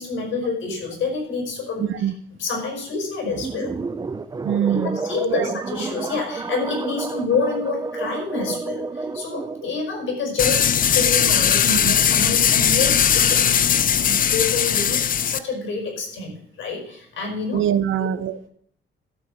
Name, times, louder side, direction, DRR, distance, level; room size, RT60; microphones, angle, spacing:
voice 1, 0.0-1.8 2.4-3.7 4.7-4.8 5.0-13.6 14.0-17.6 18.0-18.1, left 4 dB, 85° left, 1 dB, 5.2 m, -28 dB
voice 2, 1.8-2.1 4.4-5.6 11.7-12.0 17.5-18.4, right 10 dB, 80° right, 13 dB, 0.8 m, -24 dB
sound 1, 3.3-9.8, right 4 dB, 20° right, 0.5 m, -30 dB
sound 2, 10.4-15.4, left 8 dB, 45° left, 0.5 m, -19 dB
12.5 x 5.4 x 7.3 m, 0.64 s
cardioid pair, 140°, 20 cm